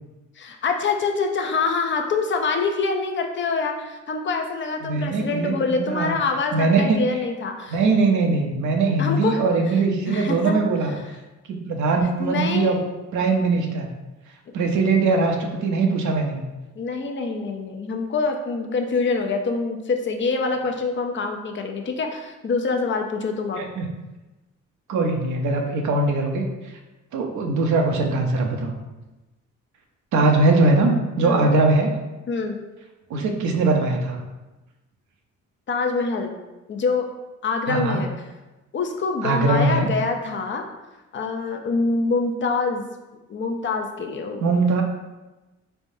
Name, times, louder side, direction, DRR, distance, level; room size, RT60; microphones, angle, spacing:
voice 1, 0.4-7.8 9.0-9.4 10.1-10.6 12.0-12.7 16.8-23.6 31.2-31.5 32.3-32.6 35.7-36.4 36.7-37.1 37.4-38.1 38.7-40.6 41.1-42.9 43.3-44.4, left 4 dB, 40° left, 4 dB, 0.6 m, -25 dB
voice 2, 4.8-6.1 6.5-7.0 7.7-10.9 11.5-12.8 13.1-13.9 14.5-16.4 23.6-23.9 24.9-26.5 27.1-28.7 30.1-31.9 33.1-34.2 37.7-38.0 39.2-39.9 44.4-44.8, right 3 dB, 75° right, 2 dB, 0.7 m, -21 dB
4.1 x 3.4 x 2.7 m, 1.1 s
cardioid pair, 90°, 30 cm